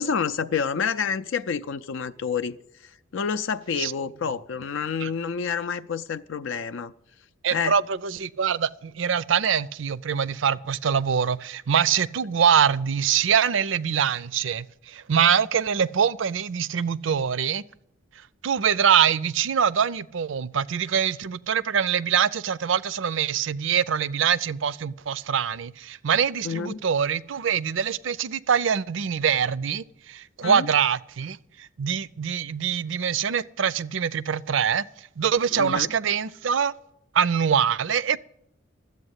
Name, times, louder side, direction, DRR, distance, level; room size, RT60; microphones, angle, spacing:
voice 1, 0.0-6.9 7.5-7.8 26.4-26.8 30.4-30.7 35.5-35.9, left 6 dB, 75° left, 0.4 m, -28 dB
voice 2, 7.4-17.6 18.4-36.7 37.1-38.2, right 7 dB, 70° right, 0.5 m, -24 dB
12.5 x 8.3 x 8.1 m
head